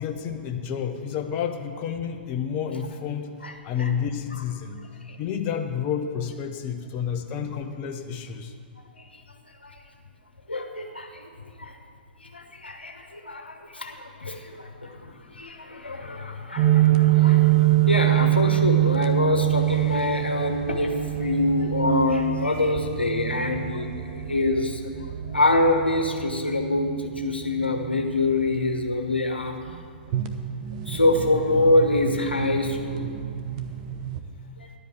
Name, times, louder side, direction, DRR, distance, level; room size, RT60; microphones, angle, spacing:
voice 1, 0.0-3.3 3.6-4.8 5.2-8.5, left 8 dB, 35° left, 5 dB, 1.0 m, -30 dB
voice 2, 10.5-11.3 11.6-11.7 12.2-24.9 25.3-29.6 30.9-33.2, left 2 dB, 90° left, 4 dB, 1.2 m, -25 dB
sound 1, 16.6-34.2, right 14 dB, 45° right, 0.9 m, -25 dB
11.0 x 5.2 x 8.1 m, 2.2 s
figure-of-eight pair, 115°, 6 cm